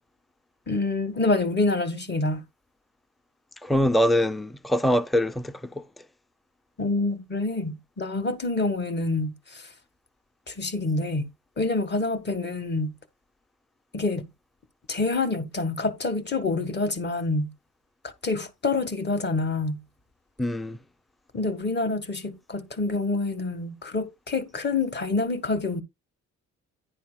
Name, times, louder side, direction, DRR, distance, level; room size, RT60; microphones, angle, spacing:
voice 1, 0.7-2.4 6.8-9.7 10.5-11.3 11.6-12.9 13.9-14.3 14.9-17.5 18.2-19.8 21.3-25.8, left 3 dB, 35° left, 1.7 m, -27 dB
voice 2, 3.6-5.9 20.4-20.8, equal, ahead, 0.6 m, -23 dB
10.0 x 10.0 x 2.3 m
cardioid pair, 90°, 30 cm